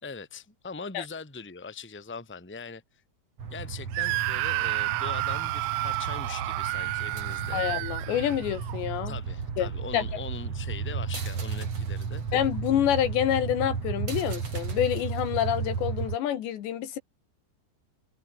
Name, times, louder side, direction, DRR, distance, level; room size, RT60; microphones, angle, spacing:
voice 1, 0.0-2.8 3.5-7.6 9.0-12.2, left 4 dB, 5° left, 1.9 m, -41 dB
sound 1, 3.4-16.2, right 5 dB, 35° right, 4.0 m, -34 dB
Screaming, 3.9-8.8, right 22 dB, 90° right, 3.1 m, -30 dB
voice 2, 7.5-9.1 9.6-10.0 12.3-17.0, left 10 dB, 70° left, 4.0 m, -27 dB
open air
omnidirectional pair, 5.5 m